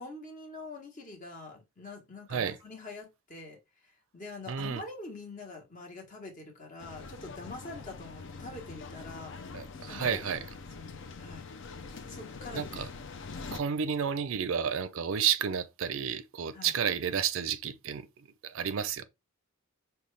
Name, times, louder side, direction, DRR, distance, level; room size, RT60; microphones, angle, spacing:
voice 1, 0.0-9.4 9.9-11.5 12.0-12.7 16.5-16.7, left 2 dB, 35° left, 1.1 m, -45 dB
voice 2, 4.5-4.8 9.5-10.4 12.5-12.9 13.5-19.0, right 7 dB, 70° right, 0.4 m, -31 dB
sound 1, 6.8-13.6, left 4 dB, 60° left, 0.5 m, -44 dB
5.4 x 2.3 x 3.2 m
head